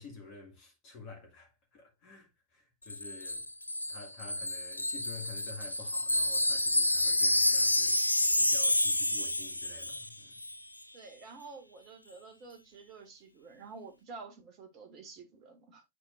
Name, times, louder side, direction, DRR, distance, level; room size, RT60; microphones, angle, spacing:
voice 1, 0.0-3.5 3.9-10.3, left 4 dB, 40° left, 2.0 m, -50 dB
Wind chime, 2.9-10.1 10.4-10.6, left 1 dB, 85° left, 0.3 m, -29 dB
voice 2, 10.9-15.8, right 4 dB, 35° right, 1.8 m, -49 dB
9.6 x 4.4 x 2.5 m
figure-of-eight pair, 90°, 0 cm